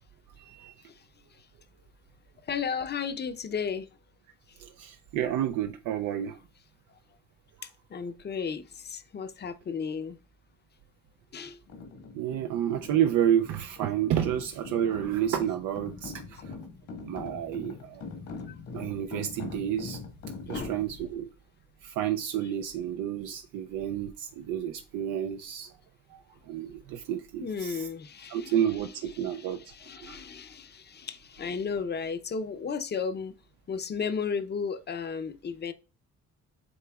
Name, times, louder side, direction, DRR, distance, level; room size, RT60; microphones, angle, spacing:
voice 1, 0.4-0.7 4.6-6.4 12.1-16.6 17.0-18.0 18.7-20.0 20.5-21.3 21.8-25.7 26.1-26.2 26.5-27.8 28.3-29.6 30.0-30.2, right 10 dB, 90° right, 0.5 m, -30 dB
voice 2, 2.4-3.9 4.5-4.6 6.9-7.0 7.6-10.2 11.3-11.6 18.5-18.6 20.5-20.7 27.4-28.9 29.2-33.3 33.7-35.7, left 6 dB, 35° left, 0.6 m, -34 dB
sound 1, 11.7-21.1, left 4 dB, 70° left, 1.4 m, -42 dB
7.9 x 2.9 x 2.3 m
cardioid pair, 90°, 30 cm